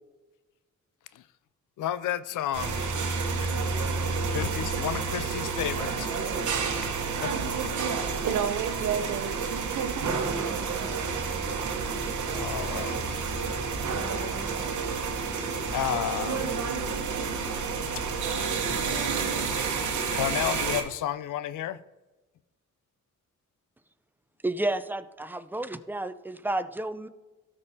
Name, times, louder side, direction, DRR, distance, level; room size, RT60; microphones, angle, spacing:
voice 1, 1.8-6.1 6.8-6.9 7.2-7.3 10.7-10.8 12.3-13.3 15.7-16.5 17.5-18.0 20.1-21.8, left 11 dB, 80° left, 0.5 m, -33 dB
sound 1, 2.5-20.8, right 5 dB, 65° right, 1.1 m, -30 dB
voice 2, 7.9-10.2, right 8 dB, 85° right, 0.6 m, -31 dB
voice 3, 24.4-27.1, right 2 dB, 5° right, 0.5 m, -31 dB
13.0 x 5.4 x 2.8 m
cardioid pair, 60°, 31 cm